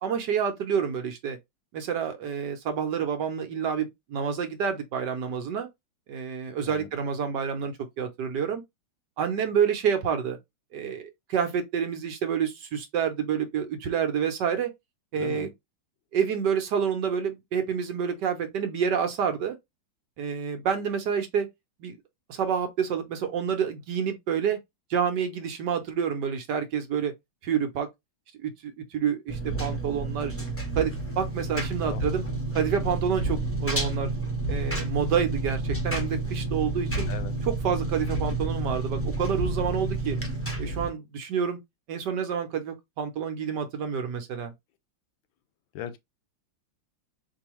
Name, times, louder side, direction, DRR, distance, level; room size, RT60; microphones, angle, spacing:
voice 1, 0.0-1.4 1.7-5.7 6.1-8.6 9.2-10.4 10.7-14.7 15.1-15.5 16.1-19.6 20.2-21.5 21.8-22.0 22.3-24.6 24.9-27.1 27.4-27.9 28.4-30.3 30.7-32.2 32.5-34.1 34.5-37.1 37.4-40.2 40.6-41.6 41.9-44.5, right 7 dB, 65° right, 1.3 m, -28 dB
voice 2, 15.2-15.5 31.8-32.0 37.1-37.3 45.7-46.0, left 10 dB, 80° left, 1.4 m, -38 dB
Engine, 29.3-40.9, right 2 dB, 15° left, 0.5 m, -30 dB
4.6 x 2.7 x 3.0 m
omnidirectional pair, 2.2 m